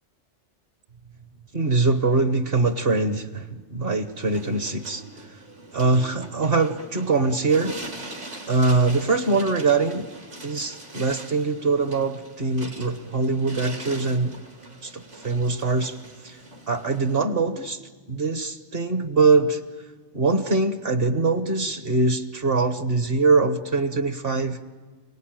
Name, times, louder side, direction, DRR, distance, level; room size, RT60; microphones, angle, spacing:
voice 1, 1.5-5.0 5.7-7.8 8.5-10.1 10.4-14.4 14.8-16.0 16.2-16.4 16.7-17.8 18.1-19.6 20.1-24.6, right 3 dB, 55° right, 9 dB, 1.4 m, -23 dB
sound 1, 4.2-17.2, right 1 dB, 75° right, 3.3 m, -42 dB
28.0 x 19.0 x 9.1 m, 1.4 s
omnidirectional pair, 1.2 m